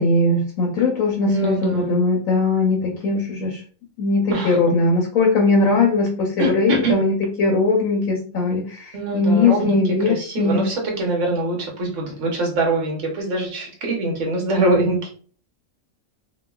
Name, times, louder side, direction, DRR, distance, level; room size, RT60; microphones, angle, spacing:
voice 1, 0.0-3.6 4.0-10.6, left 3 dB, 75° left, 0 dB, 1.0 m, -20 dB
voice 2, 1.3-1.9 4.3-4.6 6.4-6.9 8.9-15.1, right 2 dB, 60° right, 0 dB, 1.1 m, -23 dB
2.9 x 2.3 x 2.2 m, 0.42 s
omnidirectional pair, 1.5 m